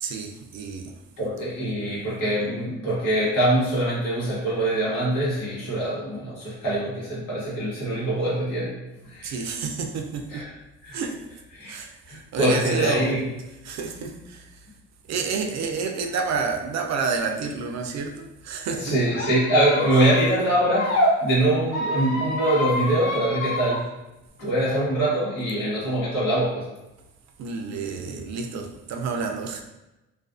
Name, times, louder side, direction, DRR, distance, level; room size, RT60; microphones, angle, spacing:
voice 1, 0.0-1.0 9.2-10.5 10.9-11.3 11.6-13.2 13.6-14.7 15.1-19.0 27.4-29.6, right 5 dB, 65° right, 4 dB, 0.4 m, -29 dB
voice 2, 1.2-8.7 9.0-9.4 10.3-10.5 10.8-11.0 11.5-11.7 12.1-13.2 18.5-23.8 24.4-26.7, right 1 dB, 90° left, -8 dB, 1.2 m, -24 dB
Squeak, 19.1-21.1 21.7-23.8, equal, 65° left, 0.9 m, -27 dB
2.4 x 2.4 x 2.4 m, 0.98 s
cardioid pair, 90°, 30 cm